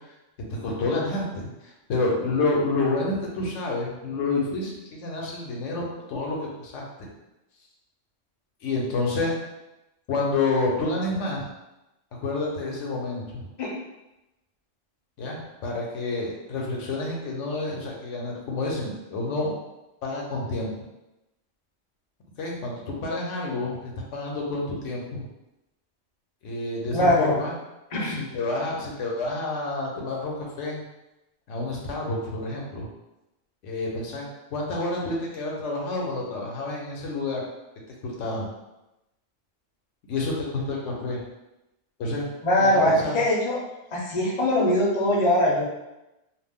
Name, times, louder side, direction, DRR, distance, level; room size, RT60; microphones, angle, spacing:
voice 1, 0.5-7.1 8.6-9.3 10.1-11.4 12.2-13.4 15.2-19.5 20.0-20.7 22.4-25.3 26.4-27.5 28.0-30.8 31.5-32.9 33.6-37.4 38.0-38.5 40.1-41.2 42.0-42.3 42.6-43.2, left 2 dB, 75° left, -2 dB, 1.0 m, -29 dB
voice 2, 26.9-27.4 27.9-28.2 42.4-43.6 43.9-45.6, left 1 dB, 40° left, -4 dB, 0.5 m, -21 dB
2.5 x 2.0 x 3.5 m, 0.96 s
omnidirectional pair, 1.3 m